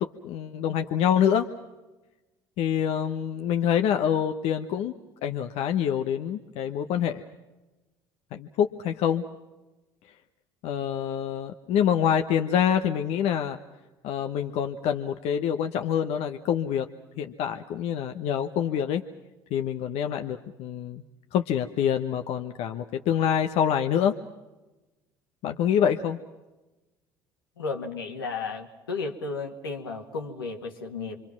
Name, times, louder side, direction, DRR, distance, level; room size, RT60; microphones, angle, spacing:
voice 1, 0.0-1.5 2.6-4.9 5.2-7.2 8.3-9.2 10.6-13.6 14.0-16.9 17.2-19.0 19.5-21.0 21.3-24.2 25.4-26.2, left 9 dB, 65° left, 6 dB, 1.0 m, -26 dB
voice 2, 27.6-31.2, left 4 dB, 90° left, 2 dB, 2.0 m, -33 dB
27.0 x 24.0 x 6.0 m, 1.1 s
hypercardioid pair, 65°, 12 cm